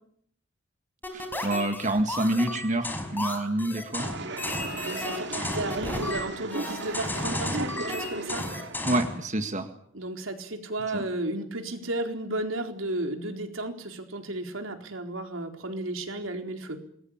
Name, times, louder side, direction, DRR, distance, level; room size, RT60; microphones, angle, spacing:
sound 1, 1.0-9.2, left 2 dB, 10° left, 5.4 m, -33 dB
voice 1, 1.1-4.1 8.8-9.7 10.9-11.0, right 1 dB, 40° right, 7 dB, 1.9 m, -27 dB
sound 2, 4.0-8.9, right 3 dB, 60° right, 2.3 m, -36 dB
voice 2, 4.7-8.5 9.9-16.8, right 2 dB, 90° right, 5 dB, 4.3 m, -33 dB
27.5 x 21.0 x 8.9 m, 0.67 s
head